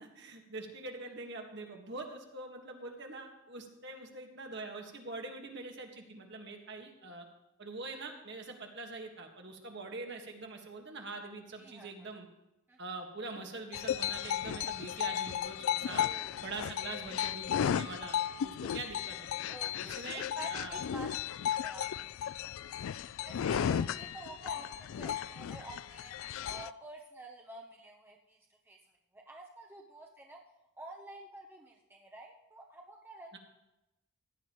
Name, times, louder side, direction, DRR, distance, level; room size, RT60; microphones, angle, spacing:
voice 1, 0.0-7.3 7.6-12.3 12.8-16.1 16.4-19.3 19.8-20.2 20.5-20.8 23.4-23.7 33.3-33.4, right 3 dB, 50° right, 2 dB, 1.7 m, -44 dB
voice 2, 11.6-12.1 12.7-12.8 15.8-16.4 16.8-17.1 19.5-21.1 21.5-28.4 28.6-28.8 29.1-30.4 30.8-33.4, right 2 dB, 10° right, 0 dB, 0.8 m, -50 dB
sound 1, 13.7-26.7, left 9 dB, 65° left, 0.3 m, -35 dB
16.0 x 10.5 x 3.1 m, 0.93 s
head